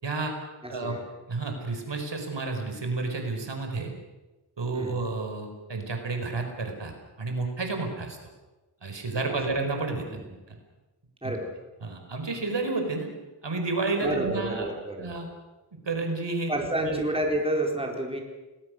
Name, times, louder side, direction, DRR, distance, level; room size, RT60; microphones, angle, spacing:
voice 1, 0.0-0.3 0.7-1.0 1.3-3.9 4.6-6.9 7.2-8.2 8.8-10.2 10.5-10.6 11.2-11.3 11.8-13.1 13.4-14.7 15.0-15.3 15.8-16.5 16.8-17.0, right 3 dB, 75° right, 4 dB, 4.9 m, -30 dB
voice 2, 0.6-1.0 4.7-5.0 9.3-9.5 10.1-10.3 11.2-11.5 14.0-15.1 16.5-18.2, right 1 dB, 15° right, 1 dB, 4.2 m, -30 dB
29.5 x 20.0 x 6.5 m, 1.1 s
wide cardioid pair, 95°, 43 cm